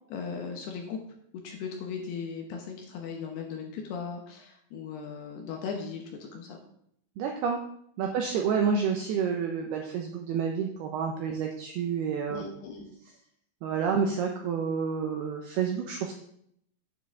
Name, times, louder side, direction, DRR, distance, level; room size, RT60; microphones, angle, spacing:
voice 1, 0.1-1.0 1.4-6.6 8.0-8.1 12.3-12.9, left 5 dB, 70° left, 2 dB, 2.6 m, -38 dB
voice 2, 7.2-7.6 8.0-12.4 13.6-16.1, right 6 dB, 85° right, 2 dB, 2.3 m, -29 dB
9.5 x 8.6 x 3.6 m, 0.70 s
omnidirectional pair, 5.6 m